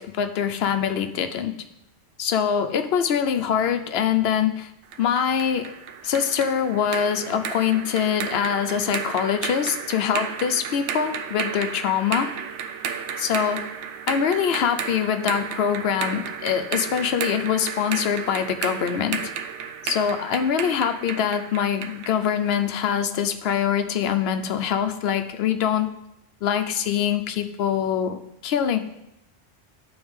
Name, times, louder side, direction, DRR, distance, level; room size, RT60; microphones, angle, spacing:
voice 1, 0.0-1.5 2.2-4.7 5.0-5.7 6.0-12.3 13.2-13.6 14.1-19.3 19.8-25.9 26.4-28.8, left 8 dB, 70° left, 8 dB, 0.8 m, -24 dB
sound 1, 4.9-22.7, right 7 dB, 85° right, 0.9 m, -33 dB
11.0 x 3.9 x 3.5 m, 0.85 s
omnidirectional pair, 1.1 m